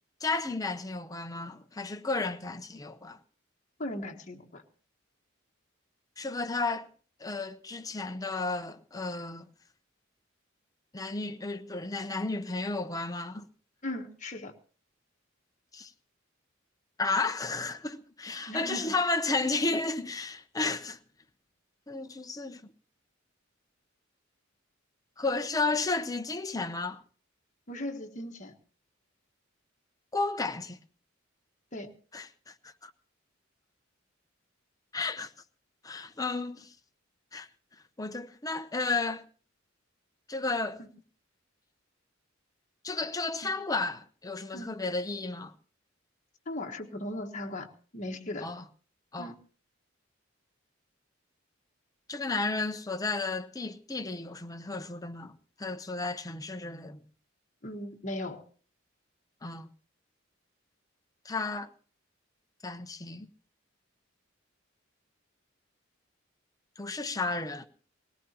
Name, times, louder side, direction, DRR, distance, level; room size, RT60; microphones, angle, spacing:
voice 1, 0.2-3.2 6.2-6.9 7.2-9.5 10.9-13.5 15.7-15.9 17.0-21.0 21.9-22.6 25.2-27.0 30.1-30.8 32.1-32.9 34.9-35.3 35.8-36.7 37.3-37.5 38.0-39.2 40.3-40.8 42.8-45.5 48.4-48.6 49.1-49.3 52.1-55.3 55.6-57.0 59.4-59.7 61.2-61.7 62.6-63.3 66.8-67.7, left 3 dB, 20° left, 0.7 m, -33 dB
voice 2, 3.8-4.6 13.8-14.5 18.5-18.9 27.7-28.5 31.7-31.9 40.8-40.9 43.4-43.5 44.5-44.7 46.5-48.5 49.2-49.3 57.6-58.4, left 1 dB, 40° left, 1.4 m, -38 dB
19.0 x 17.5 x 2.9 m
head